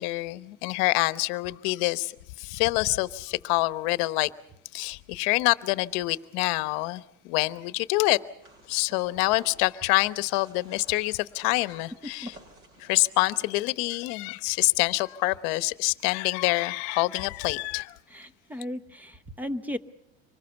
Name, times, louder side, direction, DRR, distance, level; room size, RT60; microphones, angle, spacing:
voice 1, 0.0-2.1 2.4-4.3 4.7-8.2 8.7-12.4 12.8-18.0, left 21 dB, 65° left, 1.0 m, -26 dB
sound 1, 8.4-13.5, right 1 dB, 45° right, 7.2 m, -54 dB
voice 2, 18.1-19.8, left 1 dB, 5° right, 1.0 m, -35 dB
25.0 x 20.5 x 6.9 m
supercardioid pair, 140°, 31 cm